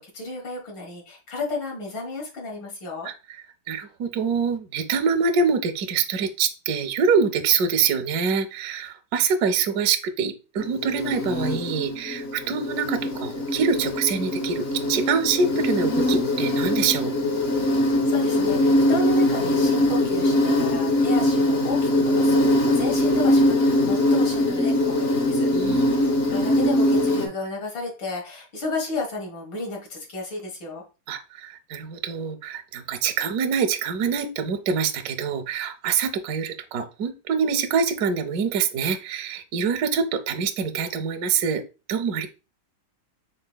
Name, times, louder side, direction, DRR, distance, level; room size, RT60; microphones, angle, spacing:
voice 1, 0.0-3.1 17.8-25.5 25.9-30.8, left 2 dB, 80° left, -1 dB, 2.2 m, -33 dB
voice 2, 3.7-17.1 25.5-25.9 31.1-41.6 41.9-42.3, right 6 dB, 70° right, 7 dB, 0.9 m, -25 dB
Insect, 10.6-27.3, left 1 dB, 50° left, 0.8 m, -22 dB
5.6 x 3.8 x 2.2 m, 0.31 s
omnidirectional pair, 2.0 m